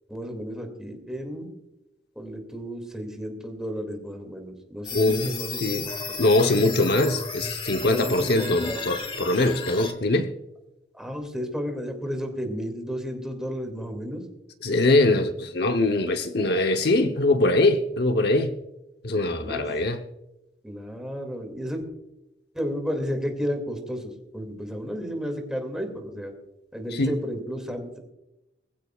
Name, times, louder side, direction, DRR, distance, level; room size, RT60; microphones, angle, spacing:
voice 1, 0.1-1.5 2.2-5.8 6.1-7.1 7.8-8.8 10.9-14.2 19.4-19.7 20.6-21.8 22.5-26.3 26.7-28.0, equal, 5° right, 3 dB, 2.3 m, -33 dB
sound 1, 4.8-9.9, left 4 dB, 30° left, 1.4 m, -34 dB
voice 2, 4.9-5.3 5.6-5.9 6.2-10.3 14.6-18.5 19.0-20.0 26.9-27.1, left 2 dB, 60° left, 6 dB, 0.9 m, -22 dB
21.0 x 15.0 x 2.4 m, 0.93 s
head